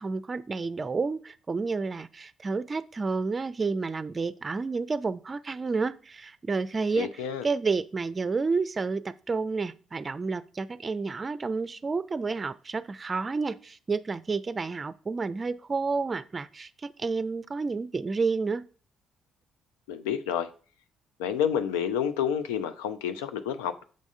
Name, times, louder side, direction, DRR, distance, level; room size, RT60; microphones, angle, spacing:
voice 1, 0.0-18.7, right 4 dB, 35° right, 0.5 m, -30 dB
voice 2, 7.0-7.5 19.9-20.5 21.2-23.8, left 8 dB, 80° left, 0.5 m, -29 dB
6.4 x 3.6 x 5.4 m
hypercardioid pair, 45°, 0 cm